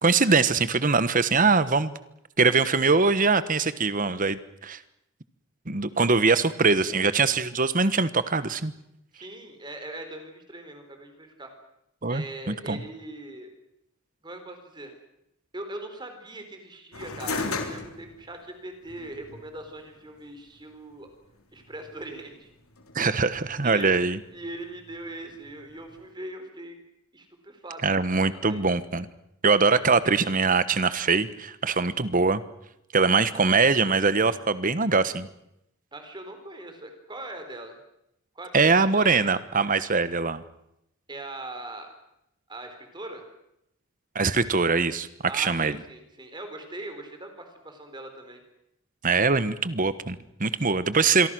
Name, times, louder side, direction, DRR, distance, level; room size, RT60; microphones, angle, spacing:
voice 1, 0.0-1.9 2.4-4.8 5.7-8.7 12.0-12.8 22.9-24.2 27.8-29.1 29.4-32.4 32.9-35.3 38.5-40.4 44.1-45.1 45.3-45.8 49.0-51.3, right 4 dB, 40° right, 14 dB, 1.2 m, -22 dB
voice 2, 9.1-11.5 12.1-13.5 14.2-14.9 15.5-21.1 21.5-22.5 23.6-26.8 27.1-27.8 28.2-28.6 29.7-29.8 35.9-37.8 38.4-39.2 41.1-41.9 42.5-43.2 45.3-48.4 50.6-50.8, right 2 dB, 20° right, 6 dB, 4.0 m, -40 dB
sound 1, 16.9-26.1, left 3 dB, 85° left, 3.3 m, -39 dB
26.5 x 23.0 x 6.3 m, 0.83 s
head